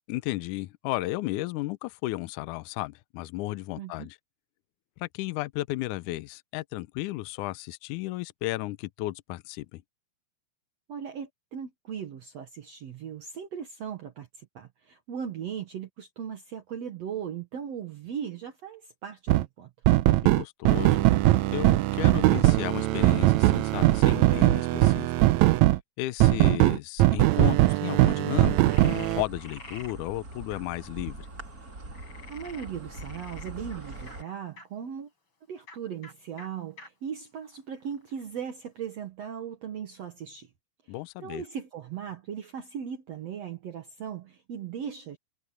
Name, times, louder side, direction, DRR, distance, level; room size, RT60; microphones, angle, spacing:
voice 1, 0.1-4.2 5.0-9.8 20.2-21.1 21.5-25.1 26.0-31.3 40.9-41.4, left 18 dB, 80° left, 2.0 m, -34 dB
voice 2, 3.8-4.1 10.9-19.7 32.3-35.1 35.5-40.5 41.2-45.2, right 8 dB, 55° right, 2.2 m, -38 dB
sound 1, 19.3-19.5 19.9-25.8 26.2-29.2, right 17 dB, 85° right, 1.7 m, -21 dB
Insect, 28.2-34.2, right 2 dB, 25° right, 3.5 m, -43 dB
Frog, 28.7-29.9 30.5-30.6 31.9-34.7 35.6-35.8 36.0-36.1 36.4-36.5 36.8-36.9 37.5-38.2, left 3 dB, 35° left, 5.4 m, -48 dB
omnidirectional pair, 3.9 m